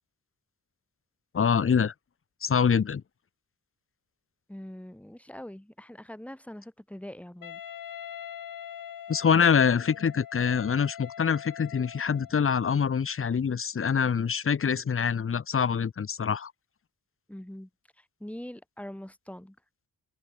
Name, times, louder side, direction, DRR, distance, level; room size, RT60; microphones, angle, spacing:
voice 1, 1.3-1.9 2.4-3.0 9.1-16.5, left 6 dB, 40° left, 1.1 m, -25 dB
voice 2, 4.5-7.6 17.3-17.7 18.0-19.6, left 1 dB, 5° left, 4.7 m, -43 dB
Wind instrument woodwind instrument, 7.4-12.4, left 9 dB, 70° left, 1.9 m, -43 dB
open air
wide cardioid pair, 135°, 34 cm